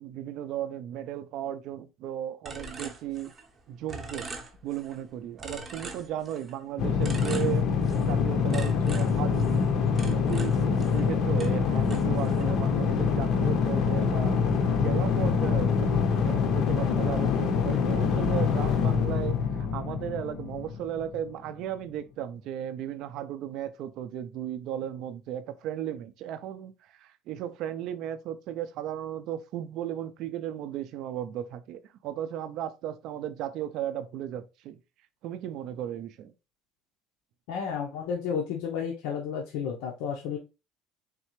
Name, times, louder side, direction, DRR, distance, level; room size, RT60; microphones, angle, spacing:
voice 1, 0.0-3.3 3.7-4.3 4.6-9.6 10.0-14.4 14.7-26.7 27.0-34.8 35.2-36.3, right 11 dB, 50° right, 0.4 m, -35 dB
sound 1, 2.4-3.6 3.9-5.0 5.4-6.6 7.0-8.2 8.5-11.1 11.4-12.6, right 3 dB, 20° right, 0.7 m, -42 dB
sound 2, 6.8-21.2, left 6 dB, 45° left, 0.6 m, -25 dB
voice 2, 37.5-40.4, left 7 dB, 80° left, 0.8 m, -32 dB
4.0 x 3.2 x 3.0 m
cardioid pair, 180°, 0 cm